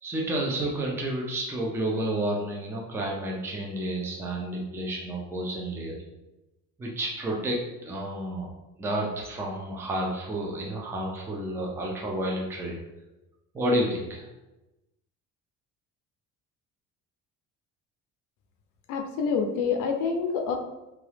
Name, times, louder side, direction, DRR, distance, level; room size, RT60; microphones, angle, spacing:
voice 1, 0.0-6.0 6.8-8.5 8.8-12.8 13.5-14.2, right 1 dB, 10° right, -1 dB, 0.3 m, -30 dB
voice 2, 18.9-20.6, left 5 dB, 70° left, 3 dB, 0.5 m, -27 dB
2.8 x 2.3 x 3.2 m, 1.0 s
cardioid pair, 155°, 33 cm